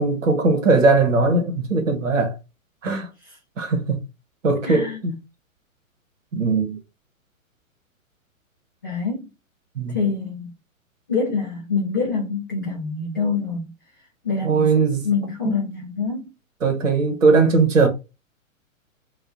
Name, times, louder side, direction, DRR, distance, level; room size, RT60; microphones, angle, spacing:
voice 1, 0.0-2.4 2.8-3.1 3.6-4.0 4.4-5.2 6.3-6.8 9.8-10.0 14.4-15.0 15.4-15.5 16.6-17.9, right 3 dB, 65° right, 1.0 m, -19 dB
voice 2, 4.6-5.0 8.8-9.3 9.9-10.5 11.1-13.7 14.2-16.3, left 5 dB, 20° left, 0.3 m, -25 dB
2.7 x 2.4 x 3.6 m
figure-of-eight pair, 110°, 41 cm